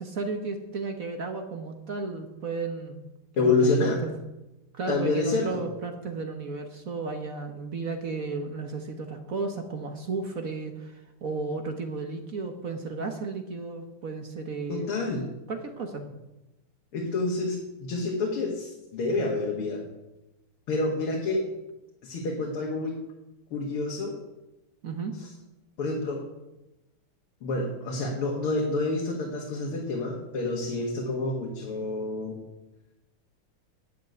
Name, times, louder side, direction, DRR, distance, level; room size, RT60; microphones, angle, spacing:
voice 1, 0.0-3.0 3.4-3.6 4.0-4.1 4.7-14.9 15.5-16.1 24.8-25.1, right 4 dB, 45° right, 5 dB, 1.3 m, -34 dB
voice 2, 3.4-4.0 4.9-5.6 14.7-15.2 16.9-19.8 20.7-21.5 22.0-23.0 23.5-24.2 25.2-25.3 25.8-26.2 27.4-32.4, left 3 dB, 80° left, -1 dB, 2.7 m, -28 dB
10.5 x 8.3 x 9.5 m, 0.97 s
omnidirectional pair, 2.4 m